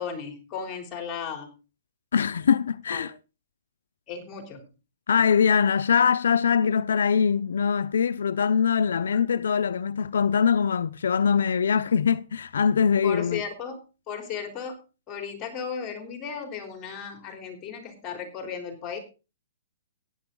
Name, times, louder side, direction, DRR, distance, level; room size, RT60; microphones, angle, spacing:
voice 1, 0.0-1.5 2.9-3.1 4.1-4.6 9.1-9.2 13.0-13.8 14.1-14.8 15.1-19.0, left 6 dB, 15° left, 3.6 m, -35 dB
voice 2, 2.1-3.1 5.1-13.4, left 7 dB, 85° left, 0.6 m, -22 dB
15.0 x 10.0 x 3.9 m
hypercardioid pair, 170°, 0 cm